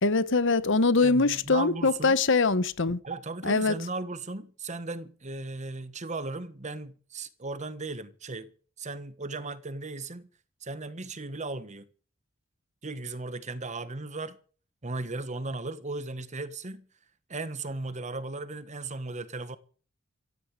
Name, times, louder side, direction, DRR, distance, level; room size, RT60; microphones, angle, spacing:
voice 1, 0.0-3.0 3.4-3.7, left 3 dB, 65° left, 1.1 m, -23 dB
voice 2, 1.0-2.2 3.0-8.5 8.8-10.3 10.6-11.9 12.8-14.4 14.8-16.9 17.3-19.6, right 3 dB, 35° right, 1.3 m, -36 dB
16.0 x 15.5 x 4.9 m
head